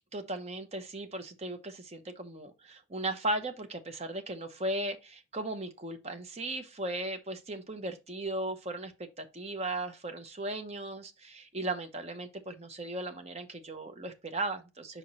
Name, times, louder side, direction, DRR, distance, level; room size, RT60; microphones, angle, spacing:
voice 1, 0.1-8.9 9.2-15.0, right 1 dB, 30° right, 0.7 m, -37 dB
5.0 x 4.8 x 4.1 m
head